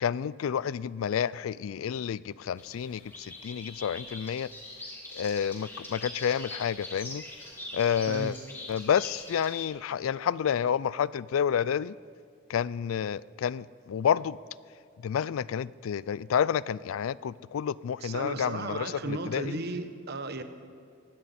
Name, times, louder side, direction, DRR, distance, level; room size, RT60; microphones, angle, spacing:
voice 1, 0.0-4.5 5.1-7.2 7.7-8.4 8.7-11.9 12.5-14.4 15.0-19.6, left 8 dB, 80° left, 20 dB, 0.3 m, -29 dB
sound 1, 2.6-9.6, left 2 dB, 10° left, 2.6 m, -43 dB
voice 2, 18.0-20.4, right 3 dB, 55° right, 9 dB, 1.0 m, -35 dB
20.5 x 16.0 x 4.3 m, 2.2 s
head